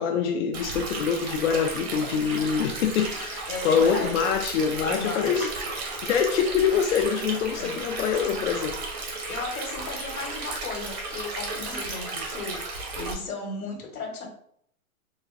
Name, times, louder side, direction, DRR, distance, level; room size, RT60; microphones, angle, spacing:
voice 1, 0.0-5.5 6.0-8.8, left 6 dB, 60° left, 3 dB, 0.5 m, -25 dB
Stream, 0.5-13.1, right 3 dB, 45° right, 1.0 m, -34 dB
voice 2, 3.5-4.1 4.8-5.5 7.6-7.8 9.3-14.3, left 3 dB, 85° left, 1 dB, 1.1 m, -35 dB
3.3 x 2.1 x 2.4 m, 0.66 s
hypercardioid pair, 125°, 42 cm